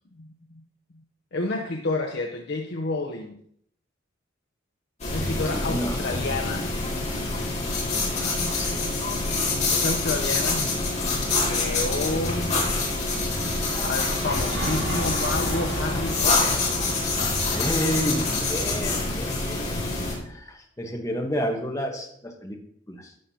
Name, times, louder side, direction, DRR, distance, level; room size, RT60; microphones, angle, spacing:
voice 1, 0.1-0.6 1.3-3.4 5.1-6.7 9.7-11.1 11.4-12.5 13.8-16.8, left 2 dB, 55° left, 2 dB, 0.7 m, -30 dB
sound 1, 5.0-20.1, left 3 dB, 35° left, 2.3 m, -26 dB
voice 2, 5.5-6.0 8.2-8.9 17.5-22.6 22.9-23.1, equal, 15° left, 2 dB, 1.1 m, -31 dB
sound 2, 13.1-19.2, right 1 dB, 65° right, 1.7 m, -35 dB
11.5 x 6.7 x 2.8 m, 0.66 s
head